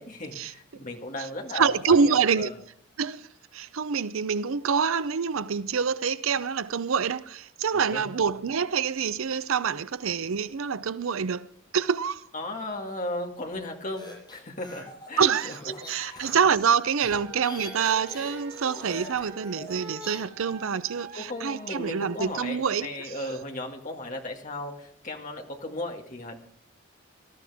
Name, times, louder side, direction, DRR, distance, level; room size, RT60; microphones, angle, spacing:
voice 1, 0.0-2.6 7.9-8.1 12.3-15.5 16.0-16.3 21.1-26.4, left 1 dB, 35° left, 2.0 m, -36 dB
voice 2, 1.5-2.5 3.0-3.3 3.5-12.2 15.2-15.5 15.9-22.9, right 6 dB, 75° right, 0.5 m, -26 dB
sound 1, 13.9-20.2, left 1 dB, 20° left, 7.4 m, -43 dB
sound 2, 16.8-22.2, right 3 dB, 50° right, 2.6 m, -45 dB
19.5 x 13.0 x 3.5 m
head